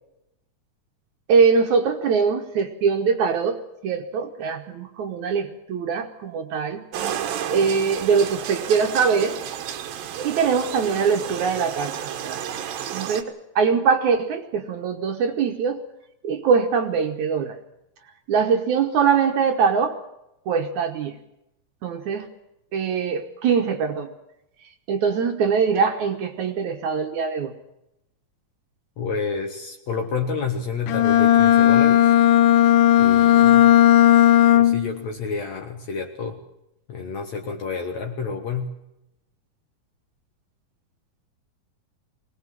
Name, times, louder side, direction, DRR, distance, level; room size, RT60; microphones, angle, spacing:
voice 1, 1.3-6.8 7.5-9.4 10.2-12.4 12.9-15.8 16.2-17.6 18.3-20.0 20.5-21.2 21.8-22.3 22.7-24.1 24.9-27.5, right 6 dB, 65° right, 4 dB, 2.4 m, -22 dB
sound 1, 6.9-13.2, right 9 dB, 85° right, 3.1 m, -31 dB
voice 2, 29.0-32.1 33.0-33.7 34.5-36.4 36.9-38.7, left 5 dB, 60° left, 4 dB, 2.6 m, -29 dB
Bowed string instrument, 30.9-35.0, left 12 dB, 75° left, 2.4 m, -15 dB
22.5 x 18.5 x 7.6 m, 0.86 s
omnidirectional pair, 4.0 m